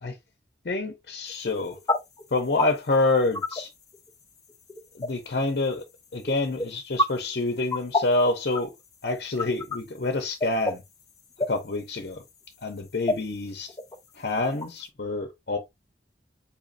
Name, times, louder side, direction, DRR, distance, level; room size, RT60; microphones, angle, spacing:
voice 1, 0.6-1.8 2.3-3.7 4.9-5.8 6.1-8.7 9.0-10.8 11.5-12.2 12.6-13.7 14.1-15.6, left 2 dB, 60° left, 0.7 m, -27 dB
sound 1, 1.3-14.9, left 2 dB, 20° left, 0.6 m, -31 dB
4.3 x 3.1 x 2.6 m
head